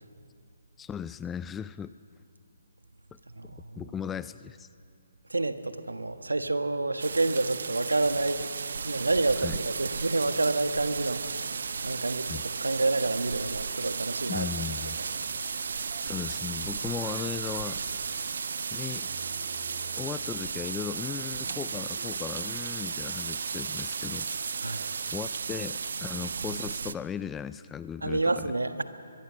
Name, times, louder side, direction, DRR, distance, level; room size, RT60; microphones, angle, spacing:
voice 1, 0.8-1.9 3.4-4.7 9.4-9.6 12.3-12.4 14.3-15.0 16.0-17.8 18.7-19.1 20.0-24.3 24.7-28.5, left 8 dB, 10° left, 16 dB, 0.5 m, -37 dB
voice 2, 3.3-3.9 5.3-8.5 8.8-14.5 24.6-24.9 28.0-28.8, right 2 dB, 80° right, 9 dB, 1.4 m, -29 dB
sound 1, 7.0-26.9, right 5 dB, 60° right, 0.7 m, -34 dB
sound 2, 14.3-25.2, right 6 dB, 40° right, 2.7 m, -47 dB
23.0 x 22.0 x 6.5 m, 2.3 s
figure-of-eight pair, 140°, 0 cm